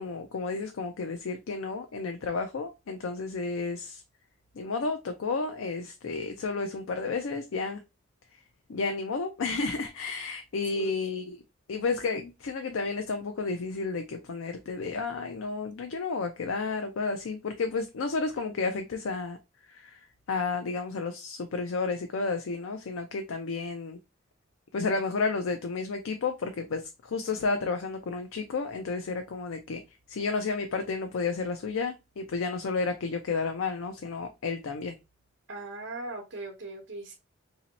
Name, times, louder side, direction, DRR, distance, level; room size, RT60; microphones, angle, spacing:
voice 1, 0.0-4.0 4.6-7.8 8.7-11.2 11.7-19.4 19.7-20.0 20.3-24.0 24.7-29.8 30.1-35.0, left 4 dB, 90° left, 0.5 m, -31 dB
voice 2, 35.5-37.1, right 2 dB, 70° right, 0.8 m, -39 dB
3.0 x 2.8 x 4.0 m
head